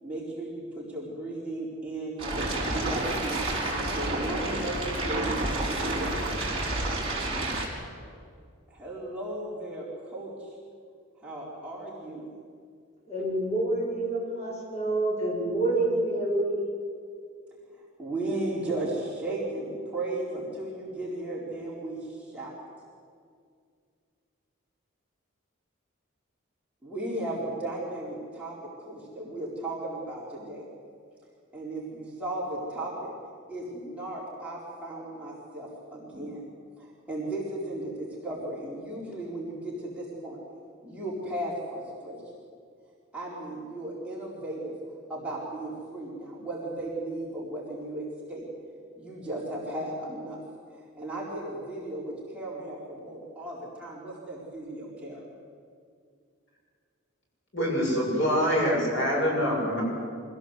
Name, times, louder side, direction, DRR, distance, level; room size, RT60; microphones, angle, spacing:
voice 1, 0.0-3.4 3.9-6.1 8.7-10.5 11.2-12.3 18.0-22.6 26.8-30.6 31.5-33.1 33.5-36.4 36.8-40.4 40.8-42.2 43.1-44.7 45.1-48.4 49.0-50.4 50.7-55.2, right 1 dB, 5° right, -6 dB, 4.2 m, -35 dB
sound 1, 2.2-7.7, right 2 dB, 25° right, 5.1 m, -29 dB
voice 2, 13.1-16.8, right 2 dB, 30° left, -4 dB, 7.6 m, -27 dB
voice 3, 57.5-59.8, equal, 60° left, -3 dB, 7.0 m, -25 dB
25.0 x 17.0 x 8.2 m, 2.2 s
head